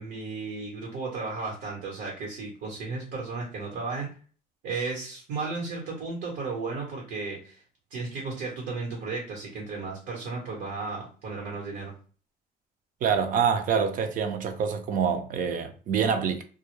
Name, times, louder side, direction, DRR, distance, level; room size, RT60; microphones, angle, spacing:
voice 1, 0.0-4.1 4.6-7.6 7.9-11.9, right 4 dB, 85° right, 1.1 m, -34 dB
voice 2, 13.0-16.4, right 6 dB, 50° right, 0.5 m, -26 dB
2.2 x 2.1 x 3.0 m
cardioid pair, 110°, 17 cm